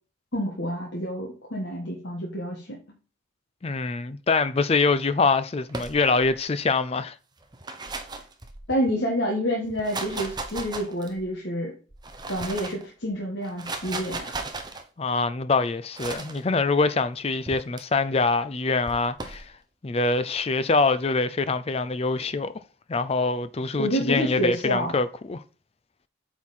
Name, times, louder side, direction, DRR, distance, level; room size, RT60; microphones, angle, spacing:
voice 1, 0.3-2.8 8.7-11.7 12.3-14.3 23.8-24.9, equal, 60° left, 1.6 m, -28 dB
voice 2, 3.6-7.2 15.0-19.5 19.8-22.5 22.9-25.4, left 3 dB, 30° left, 0.4 m, -24 dB
sound 1, 5.7-6.4 7.4-8.9 9.6-11.3 11.9-12.8 13.4-14.8 15.9-16.4 17.5-17.8 18.9-19.5, right 3 dB, 20° right, 0.8 m, -36 dB
8.4 x 4.5 x 4.2 m
head